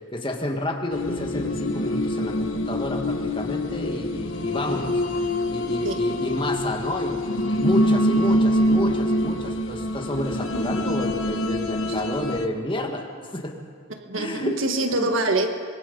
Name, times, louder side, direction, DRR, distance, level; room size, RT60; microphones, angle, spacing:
voice 1, 0.1-13.5 14.1-14.6 15.0-15.1, left 1 dB, 25° left, 2 dB, 1.8 m, -30 dB
sound 1, 0.9-12.5, equal, 80° left, 1.3 m, -25 dB
voice 2, 14.0-15.5, right 2 dB, 85° right, 5 dB, 1.7 m, -25 dB
25.0 x 22.0 x 5.5 m, 2.1 s
head